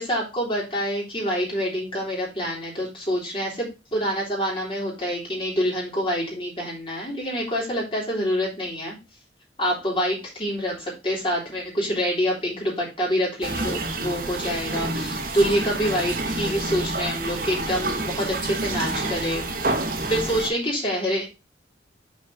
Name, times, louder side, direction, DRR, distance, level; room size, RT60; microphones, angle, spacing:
voice 1, 0.0-9.0 9.6-19.5 20.1-21.2, equal, 25° left, -4 dB, 3.3 m, -26 dB
sound 1, 13.4-20.5, right 2 dB, 50° right, 1.0 m, -28 dB
6.5 x 4.7 x 4.7 m, 0.27 s
head